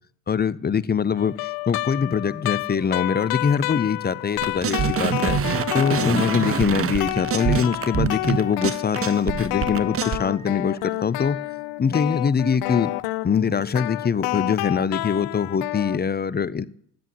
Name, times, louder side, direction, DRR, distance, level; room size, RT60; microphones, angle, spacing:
voice 1, 0.3-5.4 5.7-11.4 11.8-12.9 13.2-16.6, left 6 dB, 25° left, 0.6 m, -23 dB
sound 1, 1.2-6.7 7.0-16.0, left 21 dB, 85° left, 0.6 m, -29 dB
sound 2, 3.2-11.5, right 1 dB, 5° left, 6.5 m, -55 dB
sound 3, 4.4-10.2, right 8 dB, 40° right, 0.9 m, -25 dB
10.5 x 7.7 x 9.2 m
supercardioid pair, 75°, 36 cm